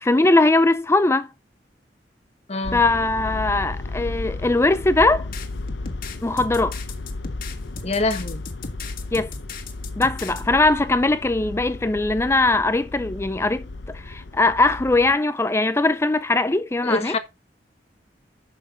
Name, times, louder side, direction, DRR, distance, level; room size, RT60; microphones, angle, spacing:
voice 1, 0.0-1.3 2.7-5.3 6.2-6.7 9.1-9.3 10.0-13.6 13.9-17.1, left 2 dB, 15° left, 0.4 m, -20 dB
voice 2, 2.5-2.8 7.8-8.4 16.8-17.2, left 2 dB, 35° left, 1.5 m, -25 dB
sound 1, 2.6-15.2, left 2 dB, 85° left, 0.8 m, -34 dB
sound 2, 5.0-10.4, left 4 dB, 55° left, 1.7 m, -37 dB
11.0 x 6.4 x 3.9 m
head